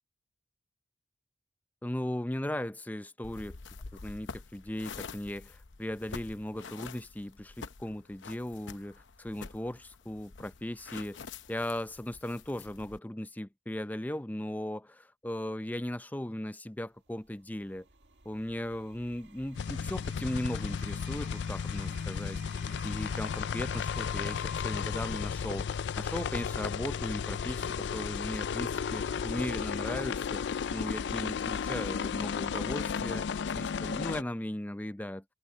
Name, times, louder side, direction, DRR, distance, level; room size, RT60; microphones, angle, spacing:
voice 1, 1.8-3.6 3.9-11.2 11.5-17.9 18.2-22.4 22.8-30.4 30.7-35.2, left 1 dB, 10° left, 0.6 m, -37 dB
sound 1, 3.2-13.0, left 4 dB, 90° left, 0.8 m, -47 dB
sound 2, 16.9-24.6, right 4 dB, 70° right, 1.9 m, -54 dB
sound 3, 19.5-34.2, left 6 dB, 65° left, 0.4 m, -34 dB
head